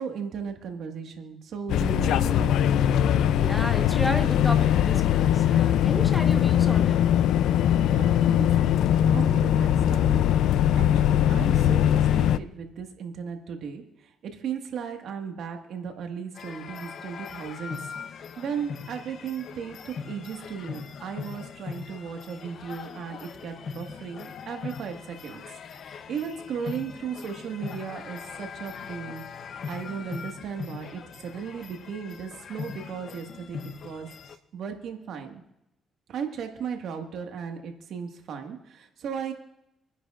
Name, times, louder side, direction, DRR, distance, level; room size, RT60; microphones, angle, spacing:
voice 1, 0.0-2.7 7.9-10.0 10.6-13.8 14.2-17.8 18.4-25.4 26.1-29.2 29.7-34.1 34.5-35.4 36.1-39.3, right 7 dB, 75° right, 4 dB, 1.7 m, -36 dB
sound 1, 1.7-12.4, left 10 dB, 80° left, 0.4 m, -21 dB
voice 2, 3.0-7.0, left 1 dB, 10° left, 6 dB, 1.2 m, -33 dB
sound 2, 16.3-34.4, left 6 dB, 60° left, 0.8 m, -40 dB
27.5 x 10.0 x 2.5 m, 0.86 s
cardioid pair, 90°, 0 cm